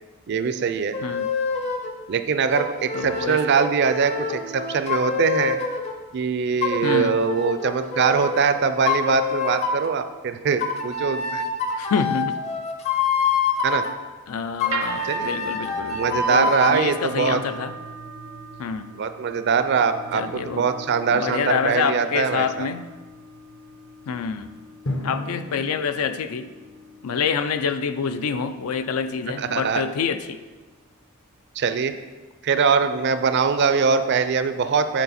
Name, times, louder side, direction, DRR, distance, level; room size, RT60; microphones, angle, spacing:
voice 1, 0.3-1.0 2.1-5.6 6.1-11.4 13.6-13.8 15.0-15.3 15.9-17.4 18.9-22.7 29.4-29.8 31.6-31.9 32.4-35.0, right 5 dB, 50° right, 10 dB, 0.4 m, -22 dB
sound 1, 0.9-1.9 2.5-5.9 6.6-8.5 8.9-9.9 10.6-13.9 14.6-16.8, left 5 dB, 30° left, 0.6 m, -26 dB
voice 2, 2.9-3.4 6.8-7.2 11.8-12.4 14.3-17.7 18.6-18.9 20.1-20.7 21.1-22.9 24.1-24.5 25.0-26.5 27.0-30.4, left 6 dB, 80° left, 10 dB, 0.4 m, -27 dB
sound 2, 14.7-30.9, right 4 dB, 85° right, 0.7 m, -41 dB
Drum, 24.9-27.6, left 1 dB, 60° left, 0.8 m, -35 dB
8.1 x 4.2 x 4.1 m, 1.3 s
head